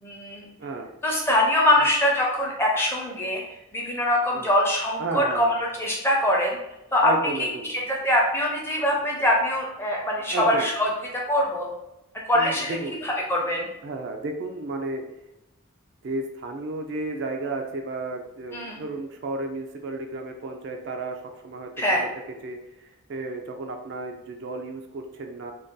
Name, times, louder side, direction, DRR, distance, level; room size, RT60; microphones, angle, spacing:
voice 1, 0.0-0.5 1.0-3.4 3.7-6.6 6.9-7.1 7.4-7.5 7.7-11.7 12.3-12.7 13.0-13.7 18.5-18.8 21.8-22.0, left 1 dB, 10° left, -2 dB, 0.5 m, -23 dB
voice 2, 5.0-5.5 7.0-7.7 10.2-10.7 12.3-13.0 13.8-15.0 16.0-22.1 22.4-25.5, right 2 dB, 55° right, 4 dB, 0.3 m, -33 dB
2.6 x 2.3 x 3.6 m, 0.93 s
head